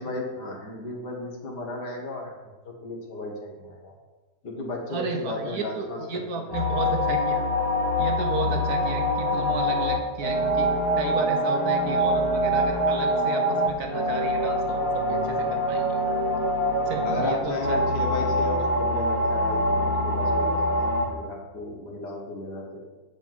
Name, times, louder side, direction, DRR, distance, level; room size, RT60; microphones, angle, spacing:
voice 1, 0.0-2.3 2.6-3.9 4.4-7.1 8.4-8.6 17.1-20.8 21.1-22.8, left 2 dB, 60° left, 0 dB, 2.2 m, -34 dB
voice 2, 4.9-7.4 8.0-10.7 11.0-15.9 16.9-17.8, right 4 dB, 60° right, 4 dB, 1.2 m, -33 dB
sound 1, 6.5-21.1, equal, 35° left, 1.4 m, -24 dB
7.8 x 5.1 x 7.3 m, 1.2 s
omnidirectional pair, 2.0 m